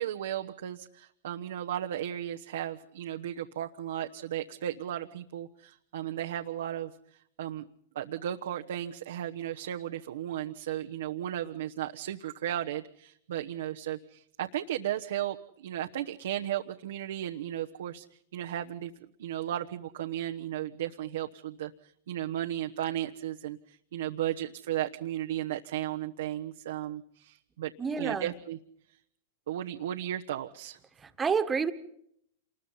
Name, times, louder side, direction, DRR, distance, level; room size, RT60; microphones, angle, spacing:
voice 1, 0.0-6.9 7.4-7.7 7.9-18.0 18.3-18.9 19.2-27.7 28.0-28.6 29.5-30.8, right 11 dB, 75° right, 4 dB, 1.1 m, -35 dB
voice 2, 27.8-28.3 31.0-31.7, right 6 dB, 15° right, 10 dB, 1.7 m, -29 dB
27.5 x 21.0 x 5.6 m, 0.70 s
hypercardioid pair, 120°, 0 cm